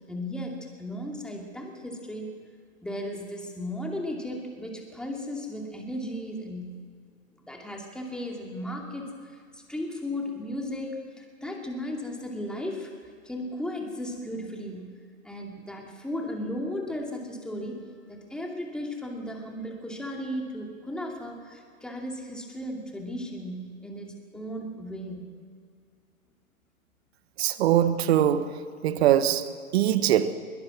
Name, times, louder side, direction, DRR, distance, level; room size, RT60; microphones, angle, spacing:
voice 1, 0.1-2.5 2.8-6.7 7.4-15.0 15.2-25.3, left 1 dB, ahead, 2.5 m, -35 dB
voice 2, 27.4-30.3, right 11 dB, 45° right, 1.3 m, -23 dB
21.0 x 21.0 x 6.2 m
hypercardioid pair, 130°, 42 cm